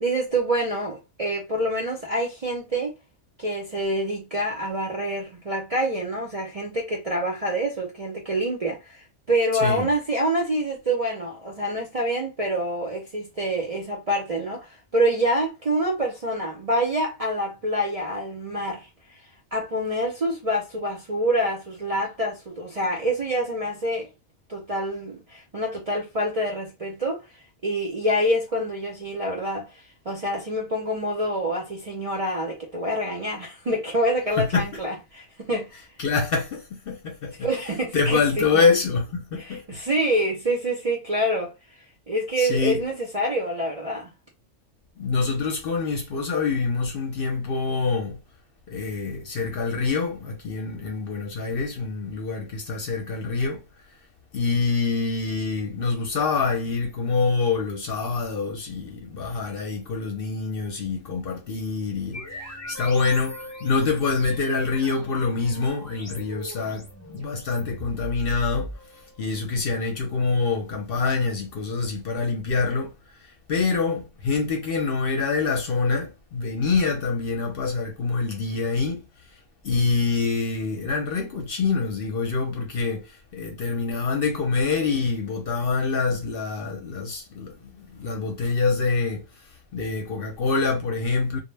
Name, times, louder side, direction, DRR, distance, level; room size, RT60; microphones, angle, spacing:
voice 1, 0.0-2.9 3.4-18.9 19.5-24.1 24.5-27.2 27.6-35.8 37.4-38.6 39.4-41.5 42.1-44.1, right 1 dB, 45° right, 0.5 m, -26 dB
voice 2, 9.5-9.9 34.4-34.8 36.0-37.5 37.9-39.8 42.4-42.8 45.0-48.2 48.7-53.6 54.3-68.7 69.2-72.9 73.2-79.1 79.6-91.4, left 4 dB, 55° left, 0.7 m, -26 dB
sound 1, 62.1-69.3, equal, 25° left, 0.4 m, -39 dB
2.1 x 2.0 x 3.2 m
omnidirectional pair, 1.3 m